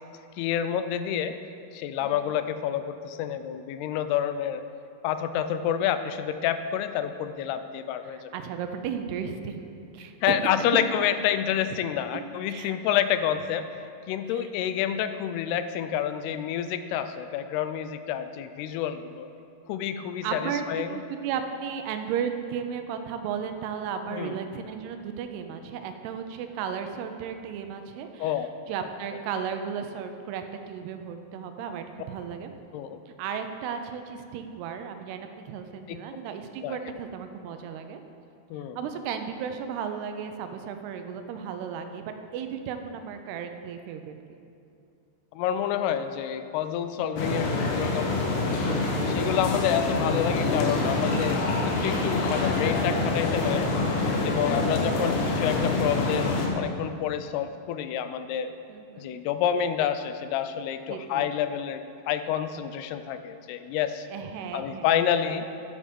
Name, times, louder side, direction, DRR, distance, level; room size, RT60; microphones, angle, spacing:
voice 1, 0.4-1.3 1.7-4.6 5.0-8.3 10.2-13.6 14.1-19.3 19.7-21.0 24.1-24.4 28.2-28.5 32.7-33.0 35.9-36.0 36.6-37.0 38.5-38.8 45.3-48.5 49.1-53.7 54.2-58.5 59.0-64.1 64.5-65.5, left 9 dB, 90° left, 10 dB, 2.6 m, -28 dB
voice 2, 2.0-2.3 8.0-10.3 10.7-10.8 12.1-12.2 12.5-12.8 14.3-14.5 20.2-32.5 33.1-38.0 38.8-44.4 54.7-54.9 58.7-59.1 60.9-61.3 64.1-65.0, right 7 dB, 90° right, 7 dB, 2.7 m, -35 dB
sound 1, 47.2-56.5, left 3 dB, 65° left, 2.3 m, -26 dB
12.0 x 8.5 x 5.2 m, 2.6 s
omnidirectional pair, 4.6 m